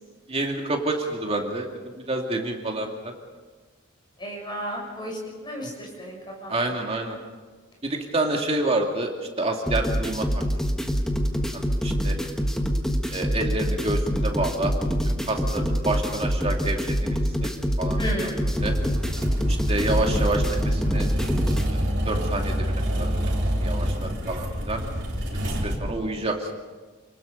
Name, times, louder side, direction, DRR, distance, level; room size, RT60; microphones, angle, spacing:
voice 1, 0.3-3.1 6.5-7.2 7.8-9.1 9.4-10.3 11.5-12.2 13.1-14.7 15.0-17.5 17.8-18.3 18.6-18.7 19.5-21.1 21.7-23.2 23.6-24.8 25.3-26.5, right 2 dB, 30° right, 2 dB, 2.5 m, -28 dB
voice 2, 4.2-6.6 18.0-18.5, equal, 20° left, -1 dB, 6.7 m, -33 dB
sound 1, 9.7-21.7, equal, 5° left, 1.4 m, -25 dB
sound 2, 18.5-25.8, equal, 55° right, 4.1 m, -27 dB
29.0 x 19.5 x 5.3 m, 1.4 s
head